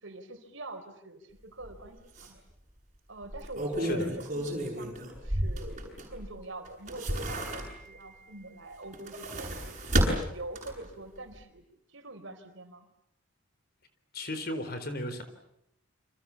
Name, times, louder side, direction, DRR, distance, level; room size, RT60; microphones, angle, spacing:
voice 1, 0.0-2.4 3.1-5.7 6.1-11.6 11.9-12.9, right 2 dB, 70° right, 7 dB, 4.4 m, -45 dB
sound 1, 1.6-1.8 2.2-2.3 3.2-6.3 6.7-8.0 8.8-10.9 11.3-11.4, right 1 dB, 35° right, 7.9 m, -32 dB
voice 2, 3.8-4.1 14.1-15.2, left 1 dB, 50° left, 10 dB, 4.2 m, -34 dB
29.5 x 26.5 x 7.3 m, 0.76 s
head